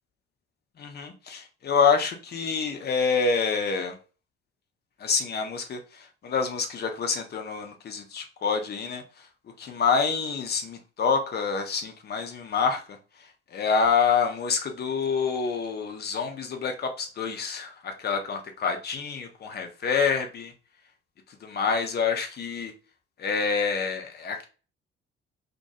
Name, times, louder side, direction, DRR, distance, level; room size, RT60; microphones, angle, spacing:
voice 1, 0.8-4.0 5.0-9.3 9.6-20.5 21.4-22.7 23.2-24.5, left 5 dB, 30° left, 0.6 m, -27 dB
2.1 x 2.1 x 2.8 m
figure-of-eight pair, 45°, 32 cm